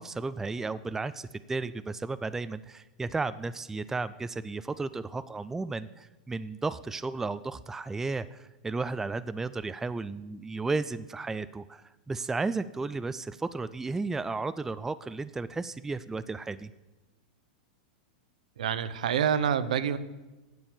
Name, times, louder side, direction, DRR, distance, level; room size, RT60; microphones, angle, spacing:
voice 1, 0.0-16.7, right 3 dB, 10° right, 14 dB, 0.3 m, -34 dB
voice 2, 18.6-20.0, right 8 dB, 70° right, 13 dB, 0.7 m, -27 dB
9.4 x 7.0 x 6.8 m, 1.1 s
figure-of-eight pair, 95°, 4 cm